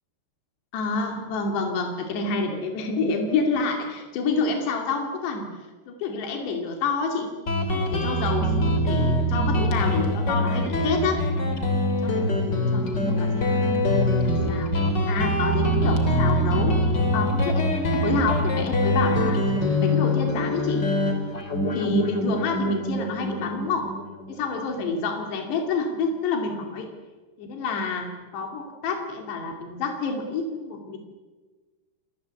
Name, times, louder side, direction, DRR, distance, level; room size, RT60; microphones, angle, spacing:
voice 1, 0.7-5.5 5.9-7.3 7.7-11.2 12.0-13.5 14.2-14.7 15.1-16.8 17.1-19.4 19.8-20.9 21.7-23.9 24.3-26.9 27.4-31.0, left 4 dB, 85° left, 3 dB, 4.8 m, -28 dB
Guitar, 7.5-24.7, left 1 dB, 30° left, 3.3 m, -24 dB
28.5 x 23.0 x 8.2 m, 1.3 s
omnidirectional pair, 4.7 m